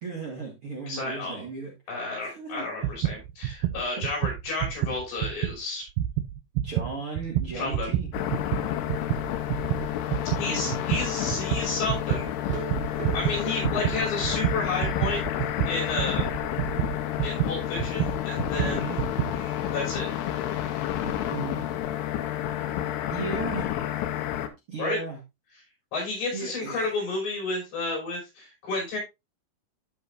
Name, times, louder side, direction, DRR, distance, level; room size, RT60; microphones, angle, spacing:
voice 1, 0.0-1.7 2.2-2.7 6.6-8.1 10.4-10.8 18.6-19.0 21.0-21.6 23.1-23.7 24.7-25.2 26.3-27.0, right 4 dB, 45° right, -2 dB, 2.0 m, -35 dB
voice 2, 0.9-1.4 1.9-5.9 7.5-7.9 10.4-12.7 13.1-15.2 15.7-16.3 17.2-19.0 19.3-20.1 24.8-25.0 25.9-29.0, left 3 dB, 65° left, -2 dB, 6.9 m, -31 dB
sound 1, 2.8-5.6 5.9-19.4, right 12 dB, 85° right, 2.1 m, -29 dB
sound 2, 8.1-24.5, left 11 dB, 80° left, 2.9 m, -30 dB
sound 3, 12.5-15.0 15.3-15.4 15.8-15.9 16.3-16.4, right 12 dB, 65° right, 3.1 m, -42 dB
13.0 x 5.7 x 2.5 m, 0.22 s
omnidirectional pair, 4.7 m